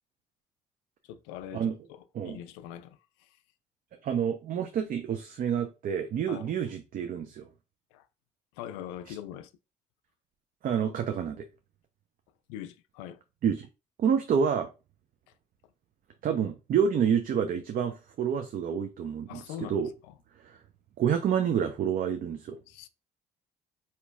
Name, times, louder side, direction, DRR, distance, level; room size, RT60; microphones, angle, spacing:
voice 1, 1.0-3.4 6.3-6.5 7.9-8.1 8.5-9.5 12.5-13.2 19.3-20.1 22.7-22.9, left 11 dB, 75° left, 0.4 m, -43 dB
voice 2, 4.0-7.5 9.1-9.2 10.6-11.4 13.4-13.7 14.0-14.7 16.2-19.9 20.4-20.6 21.0-22.6, right 7 dB, 50° right, 0.5 m, -28 dB
4.3 x 2.9 x 2.4 m
hypercardioid pair, 50°, 18 cm